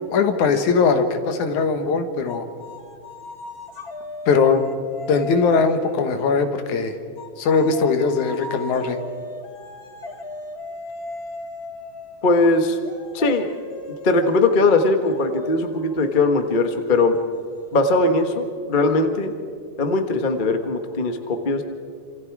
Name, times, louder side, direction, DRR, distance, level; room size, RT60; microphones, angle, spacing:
voice 1, 0.1-2.5 4.3-4.7 5.1-6.9 7.4-9.0, left 5 dB, 80° left, 7 dB, 2.8 m, -20 dB
sound 1, 2.3-6.2 7.2-18.5, left 2 dB, 40° left, 1.7 m, -38 dB
voice 2, 12.2-12.8 13.1-13.5 14.0-17.2 17.7-19.3 19.8-21.6, left 2 dB, 60° left, 6 dB, 0.5 m, -20 dB
28.0 x 27.0 x 4.8 m, 2.2 s
omnidirectional pair, 3.4 m